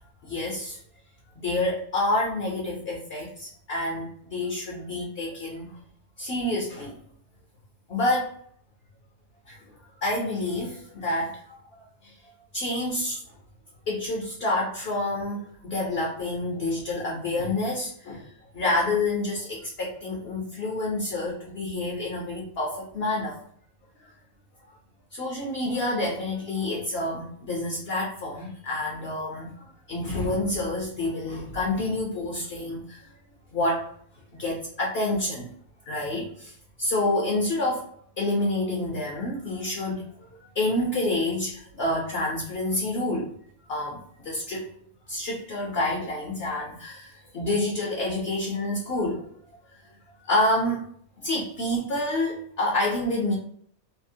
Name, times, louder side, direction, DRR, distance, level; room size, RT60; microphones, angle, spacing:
voice 1, 0.2-0.8 1.4-5.8 6.2-7.0 7.9-8.4 9.5-9.6 10.0-11.6 12.0-12.1 12.5-13.2 13.9-23.4 24.0-24.1 25.1-33.1 33.5-33.9 34.3-35.5 35.9-36.5 36.8-37.9 38.2-43.3 43.7-44.7 45.1-49.3 50.2-50.8 51.2-53.4, left 2 dB, 60° left, -2 dB, 0.7 m, -28 dB
2.7 x 2.0 x 2.5 m, 0.62 s
omnidirectional pair, 1.5 m